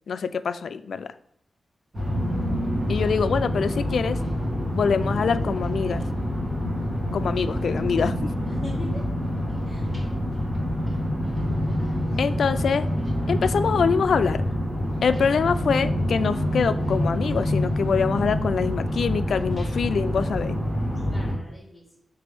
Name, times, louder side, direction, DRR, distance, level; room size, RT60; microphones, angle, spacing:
voice 1, 0.1-1.1 2.9-4.2 4.7-6.0 7.1-8.3 12.2-12.9 13.3-14.4 15.0-20.6, left 6 dB, 80° left, 12 dB, 0.3 m, -24 dB
sound 1, 1.9-21.4, equal, 30° right, 1.6 m, -26 dB
voice 2, 8.4-9.1 9.6-9.9 11.8-12.3 21.1-22.0, left 1 dB, 5° right, -9 dB, 1.7 m, -42 dB
5.9 x 3.4 x 5.1 m, 0.68 s
wide cardioid pair, 165°, 0 cm